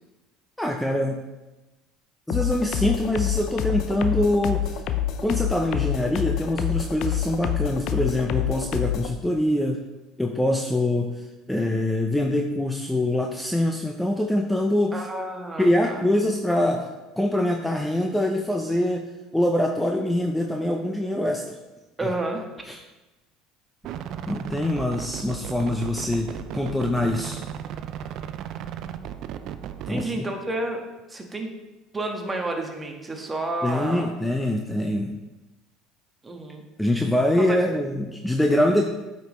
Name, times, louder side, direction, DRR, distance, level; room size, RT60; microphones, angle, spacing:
voice 1, 0.6-1.2 2.3-4.8 5.2-9.8 10.2-15.1 15.6-16.9 17.2-19.1 19.3-21.6 22.0-22.1 22.7-22.8 24.3-26.3 26.5-27.4 29.9-30.2 33.6-35.2 36.8-38.8, left 1 dB, 5° left, 2 dB, 0.6 m, -24 dB
sound 1, 2.3-9.1, left 10 dB, 60° left, 0.5 m, -27 dB
voice 2, 14.9-16.0 22.0-22.5 29.9-30.8 31.1-31.5 31.9-34.1 36.2-36.6 37.5-37.6, right 2 dB, 20° right, 2 dB, 1.4 m, -30 dB
sound 2, 23.8-30.1, right 9 dB, 60° right, 0.4 m, -35 dB
9.0 x 5.2 x 3.1 m, 1.1 s
supercardioid pair, 90°, 0 cm